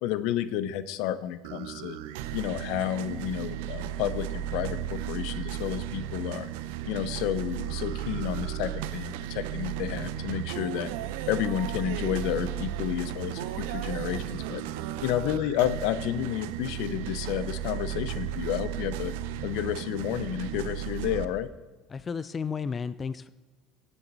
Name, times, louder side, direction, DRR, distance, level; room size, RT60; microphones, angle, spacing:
voice 1, 0.0-2.0 2.3-6.5 6.8-10.9 11.3-14.6 15.0-19.1 19.4-21.5, left 11 dB, 75° left, 14 dB, 0.6 m, -31 dB
sound 1, 1.4-21.3, right 11 dB, 85° right, 0.5 m, -34 dB
voice 2, 21.9-23.3, left 6 dB, 30° left, 15 dB, 0.4 m, -33 dB
17.0 x 7.2 x 4.0 m, 1.2 s
supercardioid pair, 100°, 0 cm